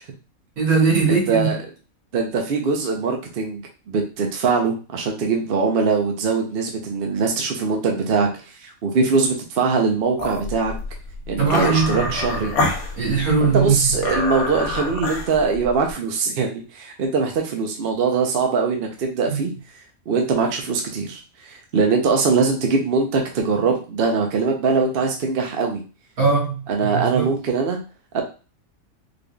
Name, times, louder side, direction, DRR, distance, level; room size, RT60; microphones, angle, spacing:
voice 1, 0.6-1.5 11.4-12.1 13.0-13.9 19.3-19.4 26.2-27.3, right 5 dB, 85° right, 2.1 m, -20 dB
voice 2, 1.1-1.6 2.1-10.7 11.3-12.5 13.4-19.5 20.1-25.8 26.7-27.8 28.1-28.2, right 4 dB, 50° right, 0.8 m, -22 dB
sound 1, 10.2-15.9, left 2 dB, 90° left, 1.2 m, -27 dB
3.8 x 3.4 x 2.3 m
omnidirectional pair, 1.5 m